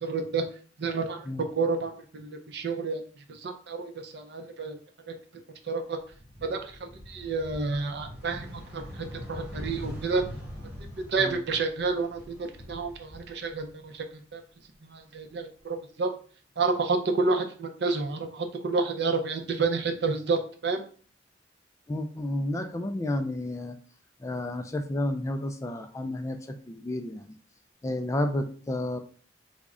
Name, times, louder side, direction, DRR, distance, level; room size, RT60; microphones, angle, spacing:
voice 1, 0.0-0.4 0.8-1.2 1.6-3.0 3.3-4.8 5.1-5.2 5.7-6.0 6.4-10.2 11.1-12.3 12.7-14.4 14.8-16.1 16.6-20.8, right 4 dB, 65° right, 5 dB, 0.5 m, -30 dB
sound 1, 6.0-14.1 14.4-15.6, equal, 10° right, 1.3 m, -43 dB
voice 2, 21.9-23.8 24.2-27.4 27.8-29.0, left 1 dB, 15° left, 6 dB, 0.3 m, -31 dB
3.5 x 2.1 x 3.6 m, 0.42 s
head